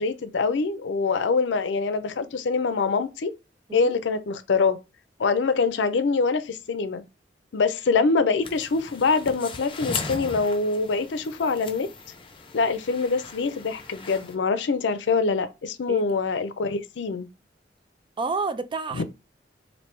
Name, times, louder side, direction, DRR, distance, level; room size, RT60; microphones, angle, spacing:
voice 1, 0.0-3.3 3.7-4.8 5.2-7.0 7.5-11.9 12.5-17.3 18.9-19.0, left 4 dB, 75° left, 0.5 m, -24 dB
sound 1, 8.4-14.3, left 4 dB, 30° left, 0.6 m, -38 dB
voice 2, 18.2-19.0, right 4 dB, 30° right, 0.4 m, -29 dB
3.2 x 2.7 x 4.4 m
head